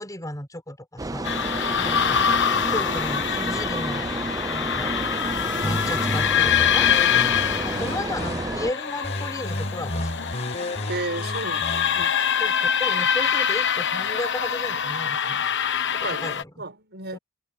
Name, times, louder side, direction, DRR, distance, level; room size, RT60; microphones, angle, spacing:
voice 1, 0.0-1.3 1.8-2.3 2.7-4.1 4.5-5.0 5.6-6.9 7.6-10.3 12.4-15.4 16.2-16.6 17.1-17.2, left 1 dB, 15° left, 5.9 m, -34 dB
sound 1, 1.0-8.7, right 2 dB, 15° right, 0.6 m, -30 dB
sound 2, 1.2-16.4, left 8 dB, 55° left, 1.2 m, -25 dB
sound 3, 5.6-8.6 9.0-12.0, left 1 dB, 30° left, 4.6 m, -32 dB
voice 2, 10.9-12.1 15.9-17.2, right 2 dB, 50° right, 7.6 m, -33 dB
head